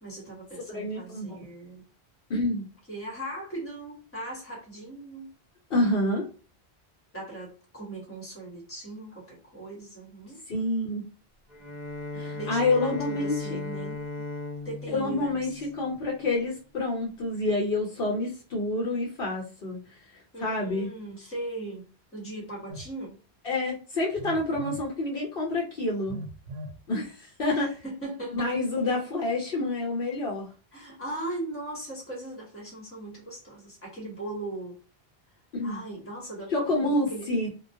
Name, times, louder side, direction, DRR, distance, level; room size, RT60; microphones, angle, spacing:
voice 1, 0.0-1.8 2.9-5.3 7.1-10.4 12.4-14.1 14.6-15.5 20.3-21.9 22.1-23.2 27.5-28.5 30.7-34.8 35.6-37.3, right 1 dB, 15° left, 0.9 m, -39 dB
voice 2, 0.7-1.3 2.3-2.6 5.7-6.3 10.5-11.0 12.1-13.6 14.9-19.8 20.4-20.9 23.4-26.2 26.9-27.8 28.4-30.5 35.5-35.8 36.5-37.5, left 2 dB, 60° left, 0.8 m, -28 dB
Bowed string instrument, 11.5-16.4, left 3 dB, 40° right, 0.8 m, -37 dB
Telephone, 22.7-22.9 24.1-24.9 26.1-26.8, right 1 dB, 80° right, 0.8 m, -39 dB
2.2 x 2.1 x 2.6 m
omnidirectional pair, 1.1 m